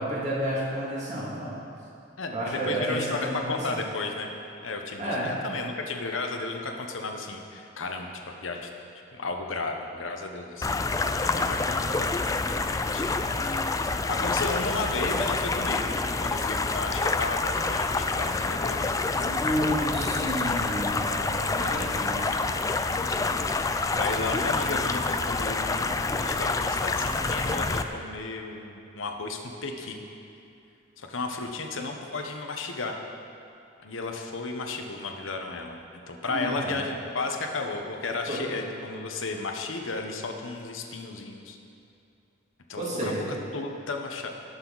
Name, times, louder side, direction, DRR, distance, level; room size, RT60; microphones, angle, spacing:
voice 1, 0.0-1.6 2.3-3.6 5.0-5.3 19.2-22.2 36.2-36.8 38.3-38.4 42.8-43.2, equal, 35° right, -6 dB, 2.6 m, -30 dB
voice 2, 2.2-4.3 4.6-8.7 9.1-10.8 11.2-12.1 12.8-13.3 14.1-19.0 21.6-22.6 22.9-30.0 31.0-33.0 33.8-41.6 42.7-44.3, left 3 dB, 75° left, 3 dB, 1.0 m, -34 dB
sound 1, 10.6-27.8, left 3 dB, 15° left, 0.4 m, -27 dB
18.0 x 6.6 x 4.1 m, 2.6 s
head